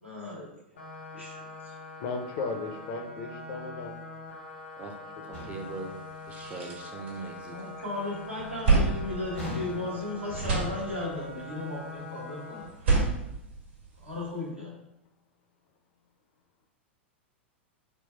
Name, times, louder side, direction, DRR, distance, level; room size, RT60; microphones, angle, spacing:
voice 1, 0.0-0.5 0.7-0.8 1.1-1.7 7.5-12.7 14.0-14.8, left 2 dB, 85° right, -5 dB, 1.3 m, -36 dB
sound 1, 0.8-12.7, left 2 dB, 70° left, 0.8 m, -44 dB
voice 2, 2.0-3.9, left 4 dB, 45° left, 4 dB, 0.5 m, -35 dB
voice 3, 5.2-6.0 6.3-7.6, right 3 dB, 20° right, 3 dB, 0.5 m, -40 dB
sound 2, 5.3-5.9 9.3-10.2, left 1 dB, 90° left, 1.2 m, -39 dB
sound 3, 5.7-5.8 6.1-7.8 8.2-10.0 10.3-11.3 12.6-14.3, right 4 dB, 60° right, 1.2 m, -29 dB
4.0 x 2.2 x 3.3 m, 0.86 s
figure-of-eight pair, 90°, 6 cm